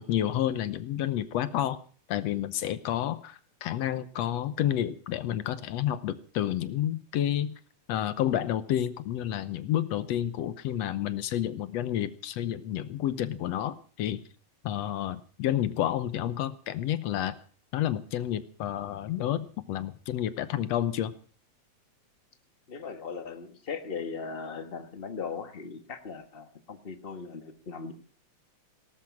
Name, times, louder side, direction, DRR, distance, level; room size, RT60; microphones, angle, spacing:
voice 1, 0.0-1.8 2.1-7.6 7.9-14.2 14.6-17.4 17.7-21.1, left 11 dB, 70° left, 14 dB, 1.9 m, -30 dB
voice 2, 22.7-27.9, left 5 dB, 35° left, 8 dB, 0.9 m, -38 dB
18.0 x 12.5 x 5.9 m, 0.41 s
omnidirectional pair, 3.4 m